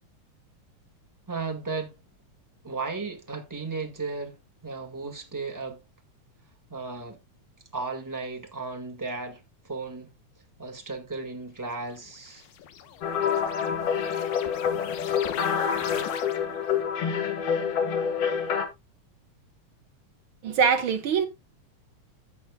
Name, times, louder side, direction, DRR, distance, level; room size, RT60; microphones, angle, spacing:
voice 1, 1.3-1.9 2.6-4.4 4.6-5.8 6.7-7.2 7.7-10.1 10.6-12.5, right 4 dB, 25° right, 0.4 m, -35 dB
sound 1, 11.8-16.7, left 10 dB, 75° left, 2.3 m, -40 dB
sound 2, 13.0-18.6, left 7 dB, 60° left, 2.6 m, -27 dB
voice 2, 20.4-21.3, right 6 dB, 65° right, 1.3 m, -23 dB
16.0 x 7.0 x 2.2 m
omnidirectional pair, 3.4 m